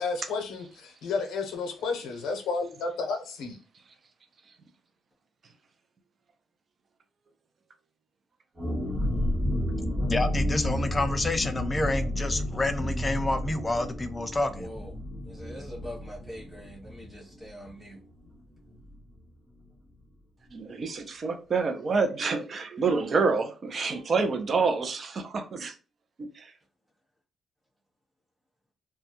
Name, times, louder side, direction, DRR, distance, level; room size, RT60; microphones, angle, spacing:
voice 1, 0.0-3.6, left 4 dB, 85° left, 0.6 m, -32 dB
sound 1, 8.6-18.0 18.2-18.3 18.7-19.0, left 1 dB, 20° right, 1.1 m, -31 dB
voice 2, 10.1-14.7, left 2 dB, 25° left, 0.4 m, -28 dB
voice 3, 15.3-18.0, equal, 5° right, 1.0 m, -43 dB
voice 4, 20.5-25.7 26.4-26.5, right 4 dB, 45° right, 0.5 m, -27 dB
2.3 x 2.1 x 2.8 m
cardioid pair, 90°, 0 cm